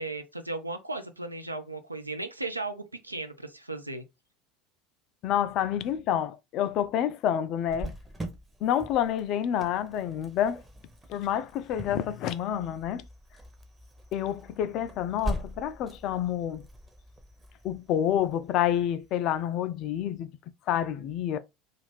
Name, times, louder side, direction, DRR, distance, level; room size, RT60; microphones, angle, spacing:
voice 1, 0.0-4.0, right 2 dB, 85° right, 0.4 m, -36 dB
voice 2, 5.2-7.9 8.6-10.6 11.1-13.0 14.1-16.6 17.6-20.3 20.7-21.4, left 10 dB, 45° left, 0.3 m, -28 dB
Cricket, 7.7-19.1, equal, 15° right, 0.7 m, -42 dB
2.5 x 2.4 x 3.4 m
figure-of-eight pair, 70°, 0 cm